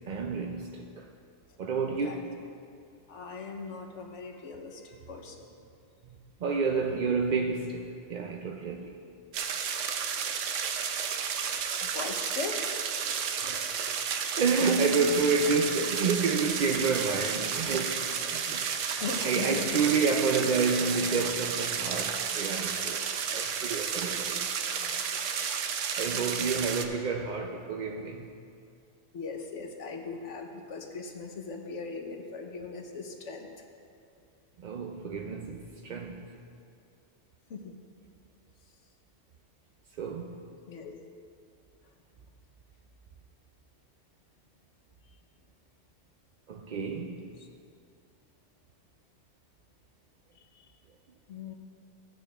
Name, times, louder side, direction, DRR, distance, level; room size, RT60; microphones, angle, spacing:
voice 1, 0.1-1.1 1.6-2.4 6.1-6.2 6.4-9.0 13.4-13.8 14.4-18.7 19.2-23.0 23.3-24.5 26.0-28.3 34.6-36.3 40.0-40.5 46.5-47.2, right 4 dB, 55° right, 0.5 m, -29 dB
voice 2, 3.1-5.5 6.8-6.9 11.8-13.0 19.0-19.8 24.5-25.0 25.9-26.6 29.1-33.5 37.5-37.7 40.7-40.9 47.4-47.5 50.3-50.7 51.3-51.5, left 4 dB, 80° left, 1.3 m, -39 dB
sound 1, 9.3-26.8, right 7 dB, 90° right, 1.0 m, -32 dB
15.0 x 9.3 x 2.4 m
omnidirectional pair, 1.2 m